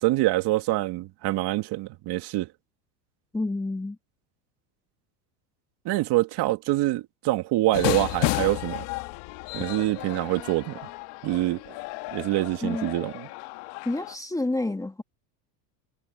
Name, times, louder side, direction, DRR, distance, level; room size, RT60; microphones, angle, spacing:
voice 1, 0.0-2.5 5.9-8.8 9.5-10.8 11.2-11.6 12.1-13.3, right 17 dB, 55° right, 2.2 m, -25 dB
voice 2, 3.3-4.0 12.6-12.9 13.8-15.0, left 2 dB, 5° left, 1.3 m, -29 dB
sound 1, 7.7-14.2, left 22 dB, 60° left, 1.5 m, -32 dB
supercardioid pair, 115°, 49 cm